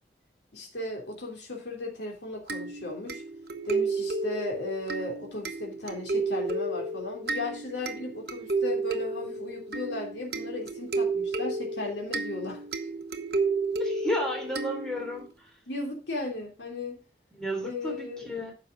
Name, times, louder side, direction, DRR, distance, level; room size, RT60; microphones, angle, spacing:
voice 1, 0.5-3.2 3.6-12.6 15.7-17.0 17.6-18.3, left 2 dB, 90° left, 0 dB, 2.9 m, -36 dB
sound 1, 2.5-15.3, right 3 dB, 65° right, 1.1 m, -32 dB
voice 2, 13.8-15.5 17.3-18.5, equal, 5° left, 0 dB, 3.2 m, -33 dB
10.0 x 6.8 x 3.9 m, 0.33 s
head